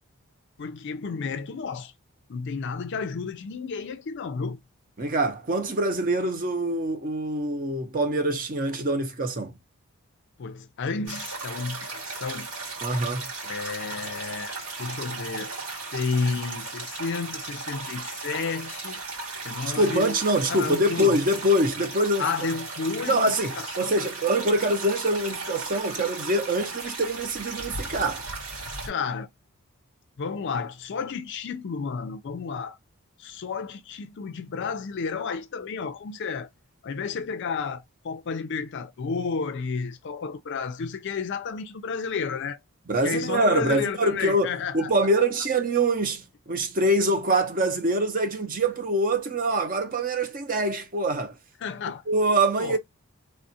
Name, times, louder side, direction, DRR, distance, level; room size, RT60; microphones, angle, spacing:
voice 1, 0.6-1.9 2.3-4.6 10.4-12.5 13.4-15.5 15.9-19.0 19.4-20.1 20.5-21.2 22.2-24.1 28.9-29.3 30.2-32.8 33.2-36.5 36.8-42.6 43.0-44.9 45.2-45.3 51.6-52.0 52.6-52.8, left 5 dB, 55° left, 0.4 m, -31 dB
voice 2, 5.0-9.6 12.8-13.3 19.8-22.3 23.1-28.3 42.9-51.4 52.1-52.8, right 1 dB, 40° right, 0.7 m, -24 dB
sound 1, 11.1-28.9, right 3 dB, 90° right, 2.2 m, -36 dB
3.3 x 2.3 x 2.7 m
head